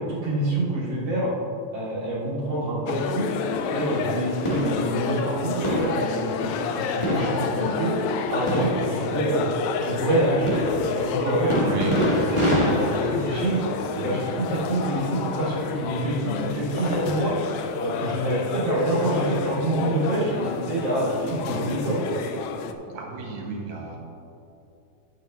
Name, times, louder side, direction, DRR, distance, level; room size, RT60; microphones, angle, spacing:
voice 1, 0.0-1.3 1.7-3.3 3.7-8.0 8.3-9.5 9.8-11.6 12.1-13.6 13.9-17.3 17.8-22.2, right 1 dB, 40° right, -7 dB, 3.1 m, -26 dB
sound 1, 2.9-22.7, left 6 dB, 80° left, 1.9 m, -30 dB
sound 2, 3.8-17.4 17.9-18.0 19.0-19.4 20.5-20.6, equal, 35° left, 0.5 m, -29 dB
voice 2, 11.6-12.0 22.9-24.0, right 4 dB, 75° right, -1 dB, 2.7 m, -32 dB
11.5 x 8.7 x 3.1 m, 2.7 s
omnidirectional pair, 3.3 m